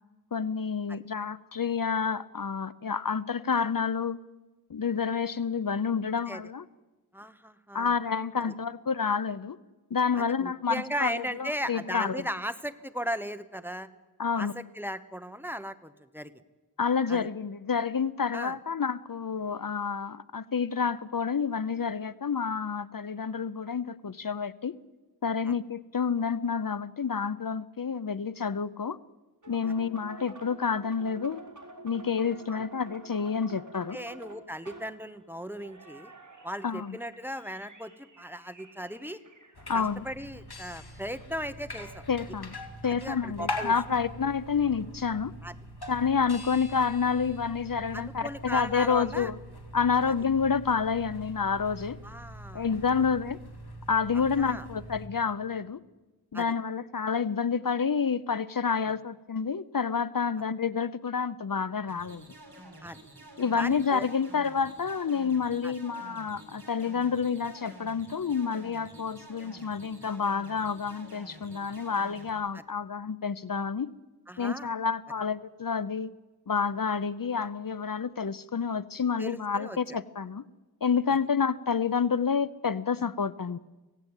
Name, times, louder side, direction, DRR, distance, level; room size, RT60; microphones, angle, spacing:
voice 1, 0.3-4.2 4.7-6.6 7.7-9.6 9.9-12.2 14.2-14.5 16.8-24.8 25.2-29.0 29.5-31.4 31.8-34.0 36.6-37.0 39.7-40.0 42.1-42.5 42.8-45.3 45.9-49.4 49.7-52.0 52.5-53.4 53.9-55.8 56.3-62.3 63.4-73.9 74.4-76.1 76.5-80.4 80.8-83.6, left 6 dB, 60° left, 17 dB, 0.7 m, -29 dB
voice 2, 7.1-7.9 10.2-13.9 14.4-16.3 17.1-17.3 18.3-18.5 25.4-25.5 32.5-32.6 33.9-36.1 36.4-37.9 38.2-39.2 39.7-42.0 42.8-43.7 45.4-45.5 47.9-49.3 52.0-52.7 54.1-54.7 56.3-56.5 58.8-58.9 62.8-63.0 63.5-64.1 65.6-65.7 72.5-72.6 74.3-74.7 79.2-79.8, equal, 5° right, 11 dB, 1.2 m, -37 dB
sound 1, 29.4-42.6 42.8-42.9 43.5-45.5, right 2 dB, 50° right, 4.1 m, -50 dB
sound 2, 39.5-55.1, left 1 dB, 75° left, 2.8 m, -42 dB
sound 3, 61.9-72.3, right 1 dB, 65° right, 7.7 m, -50 dB
25.5 x 17.0 x 9.0 m, 1.2 s
wide cardioid pair, 60°, 39 cm